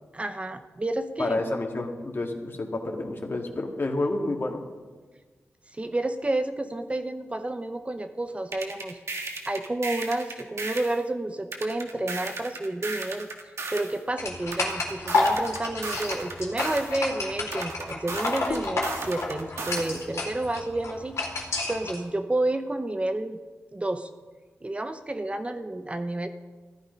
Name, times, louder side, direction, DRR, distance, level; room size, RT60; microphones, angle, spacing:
voice 1, 0.1-1.4 5.7-9.0 9.5-13.3 13.7-21.2 21.7-23.4 23.7-24.1 24.6-26.3, right 2 dB, 25° right, 8 dB, 0.8 m, -30 dB
voice 2, 1.2-4.6, left 2 dB, 50° left, 2 dB, 2.1 m, -29 dB
sound 1, 8.5-11.0 11.5-14.0 14.5-17.0 17.5-20.0, right 3 dB, 75° right, 1.7 m, -35 dB
sound 2, 14.2-22.0, left 2 dB, 80° left, 2.7 m, -30 dB
14.5 x 11.0 x 5.3 m, 1.4 s
cardioid pair, 60°, 5 cm